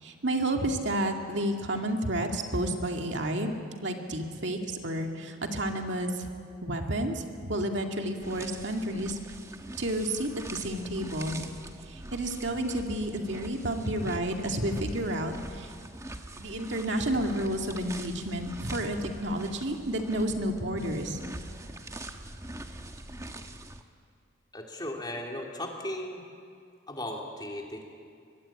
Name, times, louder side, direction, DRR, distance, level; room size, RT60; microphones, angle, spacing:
voice 1, 0.0-3.5 3.8-6.3 6.6-9.2 9.8-11.5 11.9-15.7 16.3-21.2, right 1 dB, 60° right, 3 dB, 2.1 m, -31 dB
sound 1, 8.2-23.8, right 1 dB, 15° right, 1.1 m, -43 dB
voice 2, 24.5-26.2 26.9-27.8, left 1 dB, 20° left, 0 dB, 2.9 m, -36 dB
24.0 x 22.0 x 8.7 m, 2.3 s
head